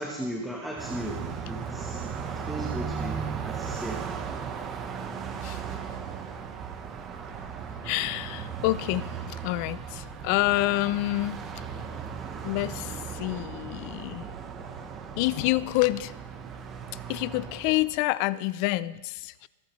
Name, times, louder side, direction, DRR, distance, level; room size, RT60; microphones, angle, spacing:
voice 1, 0.0-2.0 2.5-4.0, equal, ahead, -2 dB, 1.0 m, -36 dB
Car passing by, 0.8-18.0, right 6 dB, 20° right, 0.9 m, -37 dB
voice 2, 5.4-5.8 7.8-11.4 12.4-14.3 15.1-16.1 17.1-19.5, left 18 dB, 40° left, 19 dB, 0.3 m, -28 dB
25.0 x 8.3 x 3.1 m, 1.1 s
supercardioid pair, 165°, 0 cm